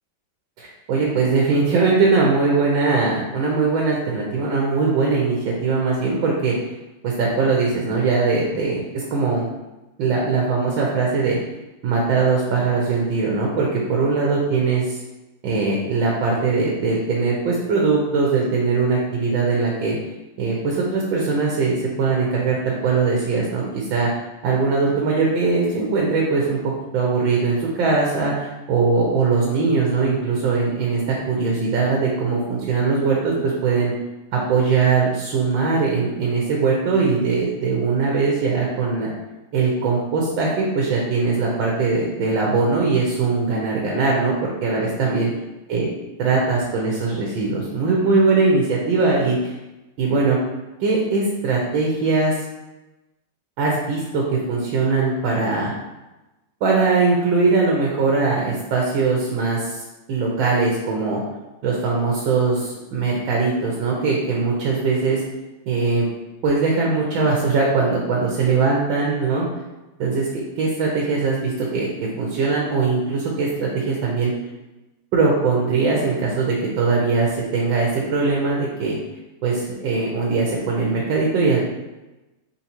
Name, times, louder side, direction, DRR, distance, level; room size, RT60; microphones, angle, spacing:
voice 1, 0.6-6.5 7.0-9.5 10.0-11.4 11.8-15.0 15.4-19.9 20.4-24.1 24.4-33.9 34.3-39.1 39.5-45.3 45.7-45.9 46.2-49.5 50.0-50.4 50.8-52.3 53.6-55.7 56.6-59.8 60.1-61.2 61.6-65.2 65.7-66.1 66.4-69.5 70.0-71.9 72.2-74.3 75.1-79.0 79.4-81.6, right 4 dB, 85° right, -2 dB, 1.5 m, -21 dB
4.2 x 4.1 x 2.9 m, 1.0 s
omnidirectional pair, 2.1 m